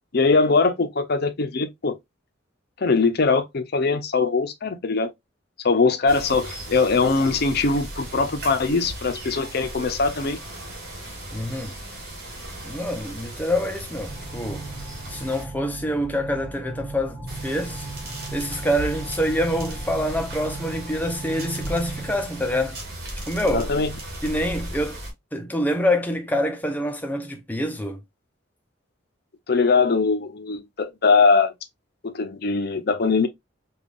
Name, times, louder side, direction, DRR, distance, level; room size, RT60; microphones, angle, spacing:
voice 1, 0.1-2.0 2.8-5.1 5.6-10.4 23.5-23.9 29.5-31.5 32.0-33.3, left 4 dB, 50° left, 0.6 m, -21 dB
sound 1, 6.1-15.4 17.3-25.1, right 1 dB, 50° right, 1.9 m, -36 dB
voice 2, 11.3-11.7 12.6-14.7 15.1-17.9 18.3-22.8 23.3-23.7 24.2-25.0 25.3-28.0, equal, 10° left, 0.6 m, -26 dB
sound 2, 14.1-22.6, right 3 dB, 30° right, 1.4 m, -37 dB
5.2 x 2.4 x 2.4 m
head